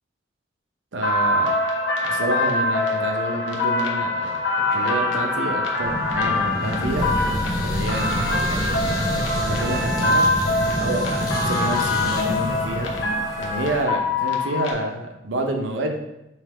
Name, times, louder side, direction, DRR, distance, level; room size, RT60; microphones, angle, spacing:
voice 1, 0.9-1.8 2.0-4.4 4.7-7.1 7.6-10.3 10.8-12.9 13.4-16.0, right 1 dB, 80° right, 4 dB, 0.7 m, -28 dB
sound 1, 1.0-14.7, left 2 dB, 80° left, 0.8 m, -24 dB
sound 2, 5.8-13.8, equal, 20° left, 0.9 m, -28 dB
5.6 x 2.8 x 3.4 m, 0.89 s
head